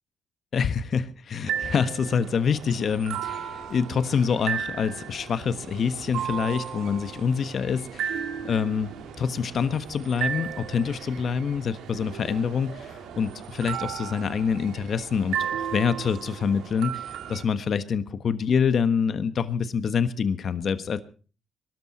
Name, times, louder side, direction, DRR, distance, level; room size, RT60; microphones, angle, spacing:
voice 1, 0.5-8.9 9.2-15.4 15.7-21.0, left 6 dB, 55° left, 12 dB, 1.4 m, -26 dB
sound 1, 1.4-17.4, right 8 dB, 85° right, 1.9 m, -35 dB
sound 2, 2.0-13.1, left 2 dB, 85° left, 4.8 m, -55 dB
22.0 x 13.0 x 4.3 m, 0.37 s
cardioid pair, 90°, 0 cm